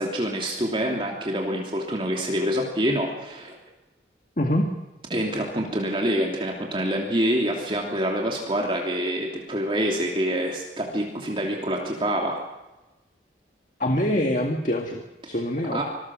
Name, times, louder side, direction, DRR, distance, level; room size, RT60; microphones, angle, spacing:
voice 1, 0.0-3.6 5.1-12.4 15.7-15.8, equal, 30° right, 0 dB, 3.1 m, -26 dB
voice 2, 13.8-15.8, left 1 dB, 45° left, 3 dB, 2.1 m, -25 dB
26.0 x 20.5 x 6.4 m, 1.1 s
head